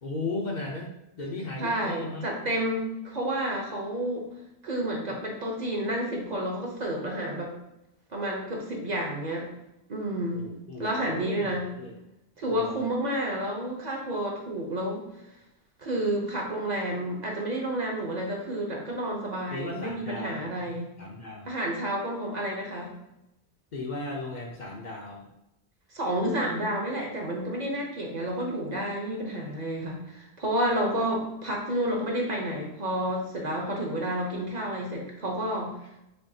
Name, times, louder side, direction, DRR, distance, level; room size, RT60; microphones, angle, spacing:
voice 1, 0.0-2.3 10.3-12.0 12.5-12.8 19.5-21.5 23.7-25.3, left 2 dB, 50° left, 0 dB, 0.7 m, -36 dB
voice 2, 1.6-4.3 4.6-7.5 8.1-9.5 9.9-10.4 10.8-11.7 12.4-15.0 15.8-20.9 21.5-22.9 25.9-35.7, right 1 dB, 45° right, 0 dB, 0.8 m, -30 dB
6.7 x 2.3 x 2.7 m, 0.88 s
omnidirectional pair, 1.1 m